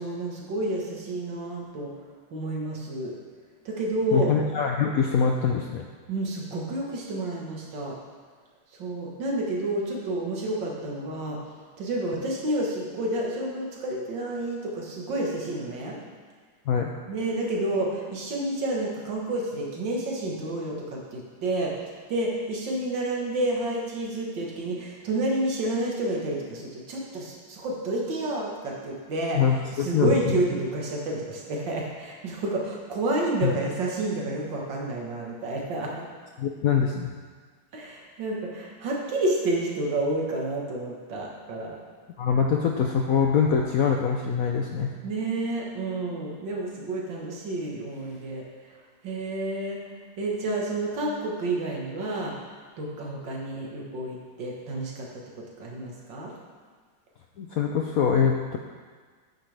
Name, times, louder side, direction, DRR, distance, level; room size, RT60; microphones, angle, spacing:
voice 1, 0.0-1.9 2.3-3.1 3.7-4.3 6.1-8.0 8.8-11.4 11.8-16.0 17.1-36.1 37.7-41.8 45.0-48.7 49.0-49.8 50.2-52.4 52.8-56.3, right 2 dB, 75° right, -2 dB, 2.1 m, -30 dB
voice 2, 4.1-5.8 16.7-16.9 29.4-30.1 33.4-33.5 36.4-37.1 42.2-44.9 57.4-58.6, left 6 dB, 70° left, 2 dB, 0.8 m, -24 dB
9.2 x 9.0 x 3.4 m, 1.6 s
omnidirectional pair, 2.0 m